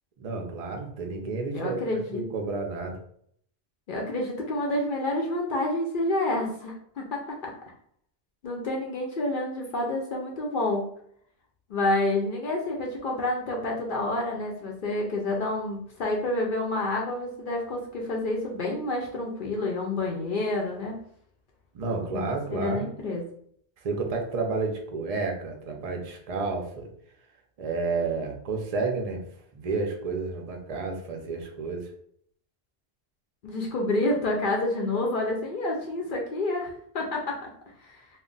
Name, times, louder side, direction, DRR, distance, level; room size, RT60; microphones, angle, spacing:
voice 1, 0.2-3.0 21.7-22.9 23.8-26.9 27.6-29.2 29.5-31.9, right 4 dB, 45° right, 2 dB, 0.5 m, -31 dB
voice 2, 1.5-2.3 3.9-7.5 8.4-10.8 11.7-21.0 22.1-22.2 22.5-23.2 33.4-37.5 37.8-38.1, left 2 dB, 60° left, -1 dB, 0.6 m, -29 dB
2.3 x 2.1 x 3.7 m, 0.65 s
omnidirectional pair, 1.1 m